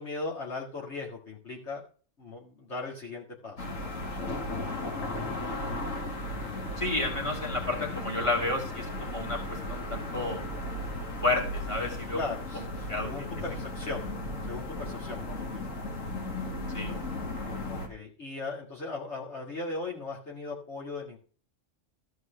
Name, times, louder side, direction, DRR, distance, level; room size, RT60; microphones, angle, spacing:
voice 1, 0.0-1.8 2.2-5.1 12.1-14.1 14.4-15.7 17.7-21.2, left 3 dB, 60° left, -3 dB, 2.3 m, -38 dB
sound 1, 3.6-17.9, left 1 dB, 90° left, 2.3 m, -35 dB
voice 2, 6.8-10.4 11.2-12.2 12.9-13.1 16.7-16.9, left 2 dB, 25° left, 0 dB, 2.9 m, -31 dB
14.0 x 4.7 x 6.2 m, 0.40 s
omnidirectional pair, 1.3 m